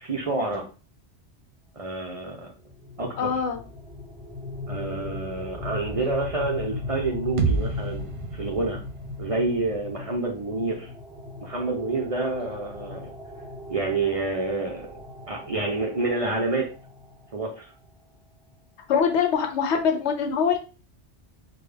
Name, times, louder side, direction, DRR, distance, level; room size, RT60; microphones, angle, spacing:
voice 1, 0.0-0.6 1.7-2.5 3.0-3.3 4.7-8.8 9.2-10.9 11.4-13.1 13.7-14.9 15.3-16.7 17.3-17.6, right 3 dB, 40° right, -1 dB, 0.5 m, -28 dB
sound 1, 2.7-17.6, left 3 dB, 5° right, 0.7 m, -38 dB
voice 2, 3.2-3.6 18.9-20.6, left 6 dB, 75° left, 5 dB, 0.9 m, -23 dB
sound 2, 7.4-11.2, right 5 dB, 80° right, 0.9 m, -32 dB
3.7 x 2.2 x 3.3 m, 0.35 s
omnidirectional pair, 1.2 m